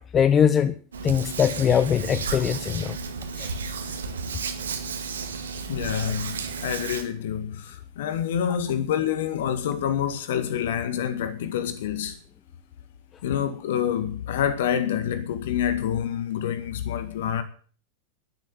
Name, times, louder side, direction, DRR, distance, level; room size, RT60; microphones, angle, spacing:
voice 1, 0.1-0.7 1.0-3.0 3.4-3.6, left 8 dB, 25° left, 0.8 m, -21 dB
Hands, 0.9-7.0, right 4 dB, 65° right, 2.1 m, -33 dB
voice 2, 5.7-12.2 13.2-17.4, left 9 dB, 55° left, 2.0 m, -27 dB
11.0 x 11.0 x 7.5 m
figure-of-eight pair, 90°, 0 cm